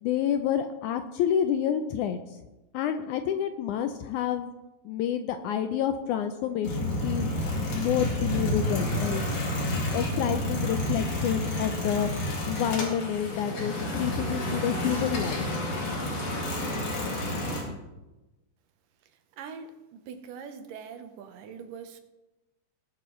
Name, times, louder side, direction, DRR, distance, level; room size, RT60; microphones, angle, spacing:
voice 1, 0.0-2.2 2.7-4.5 4.8-7.3 7.7-9.2 9.9-15.5, left 9 dB, 85° left, 8 dB, 1.7 m, -29 dB
sound 1, 6.6-17.6, left 1 dB, 50° left, 3.1 m, -30 dB
voice 2, 19.3-22.0, right 6 dB, 75° right, 8 dB, 2.4 m, -42 dB
19.5 x 8.5 x 3.1 m, 1.1 s
omnidirectional pair, 4.0 m